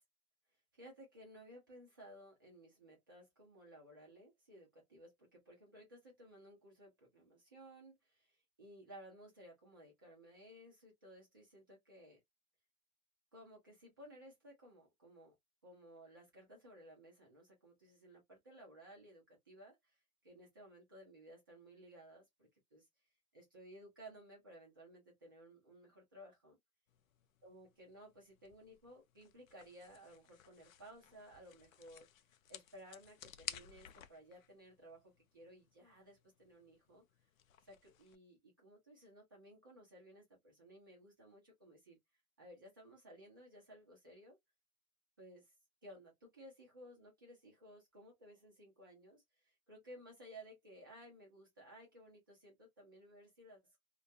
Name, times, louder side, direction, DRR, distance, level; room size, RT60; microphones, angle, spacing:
voice 1, 0.7-12.2 13.3-15.3 15.6-19.8 20.2-22.8 23.3-26.6 27.4-32.1 32.5-37.0 37.7-42.0 42.4-44.4 45.2-45.5 45.8-53.6, equal, 15° right, 0.4 m, -58 dB
sound 1, 26.9-38.2, left 10 dB, 75° left, 0.5 m, -55 dB
2.3 x 2.2 x 2.6 m
hypercardioid pair, 170°, 41 cm